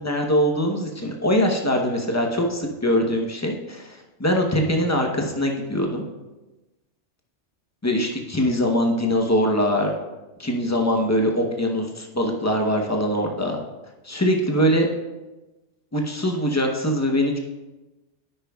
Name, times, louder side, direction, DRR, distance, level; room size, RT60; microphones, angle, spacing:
voice 1, 0.0-6.0 7.8-9.9 10.4-13.6 14.0-14.9 15.9-17.4, equal, 15° left, 1 dB, 0.8 m, -22 dB
9.9 x 8.8 x 2.4 m, 1.1 s
omnidirectional pair, 1.2 m